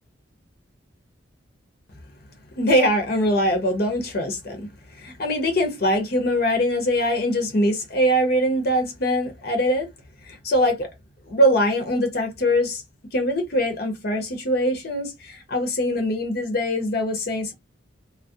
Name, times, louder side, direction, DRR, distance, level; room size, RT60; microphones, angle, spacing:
voice 1, 2.6-4.7 4.9-9.9 10.3-10.9 11.3-12.8 13.1-17.5, equal, 50° left, 0.6 m, -22 dB
2.3 x 2.0 x 2.6 m
head